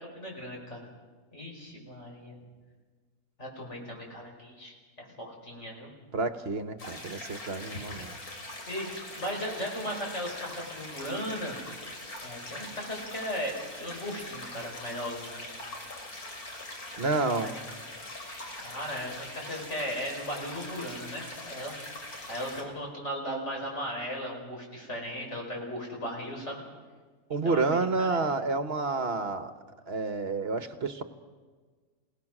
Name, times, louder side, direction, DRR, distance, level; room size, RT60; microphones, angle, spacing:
voice 1, 0.1-0.9 1.3-2.3 3.4-5.9 7.7-7.9 8.7-11.6 12.2-13.5 13.8-15.4 17.4-17.5 18.6-21.7 22.3-26.6 27.4-28.2, equal, 50° left, -1 dB, 5.4 m, -37 dB
voice 2, 6.1-8.2 17.0-17.5 27.3-29.5 29.9-31.0, right 3 dB, 45° right, 10 dB, 1.3 m, -29 dB
sound 1, 6.8-22.6, left 2 dB, 85° left, 3.7 m, -42 dB
28.5 x 18.0 x 6.1 m, 1.4 s
omnidirectional pair, 1.5 m